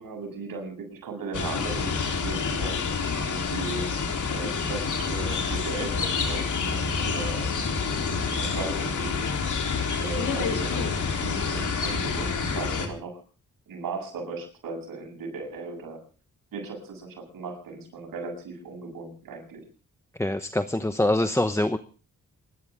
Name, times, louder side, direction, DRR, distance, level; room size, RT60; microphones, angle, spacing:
voice 1, 0.0-4.0 4.2-9.3 10.0-13.2 13.7-16.0 16.5-19.6, right 4 dB, 85° right, 3 dB, 7.4 m, -37 dB
sound 1, 1.3-12.9, left 5 dB, 60° left, 3.8 m, -28 dB
voice 2, 20.2-21.8, left 1 dB, 10° left, 10 dB, 1.0 m, -24 dB
28.0 x 13.0 x 3.7 m, 0.38 s
cardioid pair, 80°, 33 cm